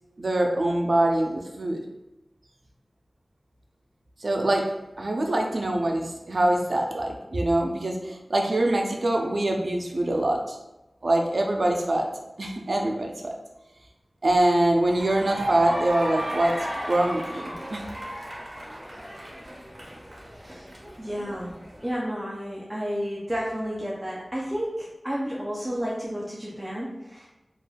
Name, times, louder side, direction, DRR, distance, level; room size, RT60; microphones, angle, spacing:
voice 1, 0.2-1.8 4.2-4.6 5.0-10.6 11.0-12.1 12.4-13.3 14.2-16.5 16.9-17.9, right 1 dB, 75° right, 1 dB, 0.4 m, -24 dB
sound 1, 14.9-21.9, equal, 45° right, 0.8 m, -34 dB
voice 2, 20.3-21.6 21.8-27.3, equal, 15° right, -6 dB, 0.5 m, -32 dB
3.3 x 2.3 x 2.2 m, 1.0 s
wide cardioid pair, 50°, 0 cm